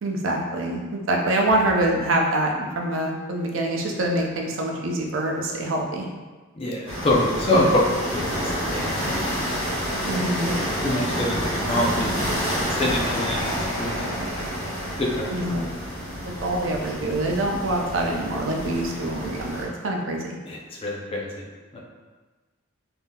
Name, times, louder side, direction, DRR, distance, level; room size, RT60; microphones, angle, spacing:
voice 1, 0.0-6.1 9.8-10.5 15.3-15.6 16.4-20.4, right 1 dB, 75° right, 0 dB, 0.5 m, -25 dB
voice 2, 6.6-7.9 8.4-9.4 10.6-14.1 15.0-15.4 20.5-21.4 21.7-21.8, left 1 dB, 30° left, -2 dB, 0.5 m, -25 dB
sound 1, 6.9-19.6, equal, 10° left, 1.4 m, -28 dB
3.4 x 2.7 x 2.3 m, 1.3 s
head